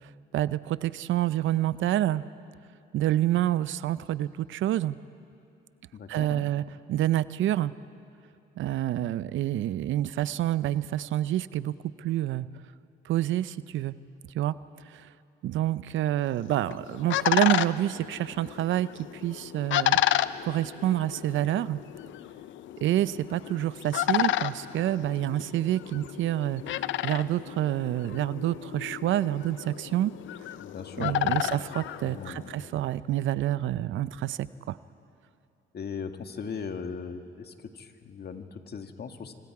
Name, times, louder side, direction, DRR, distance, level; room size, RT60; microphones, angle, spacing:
voice 1, 0.3-2.2 2.9-5.0 6.1-6.6 6.9-7.7 8.6-12.5 13.1-14.0 14.3-14.5 14.9-15.1 15.4-20.0 20.4-21.8 22.8-26.8 27.0-30.1 31.0-34.4 34.7-34.8, right 13 dB, 75° right, 16 dB, 0.6 m, -28 dB
voice 2, 5.9-6.5 30.6-31.5 32.0-32.5 35.7-39.3, left 5 dB, 55° left, 6 dB, 1.8 m, -39 dB
sound 1, 16.4-32.7, left 12 dB, 75° left, 0.6 m, -31 dB
29.5 x 25.5 x 4.8 m, 2.6 s
supercardioid pair, 70°, 20 cm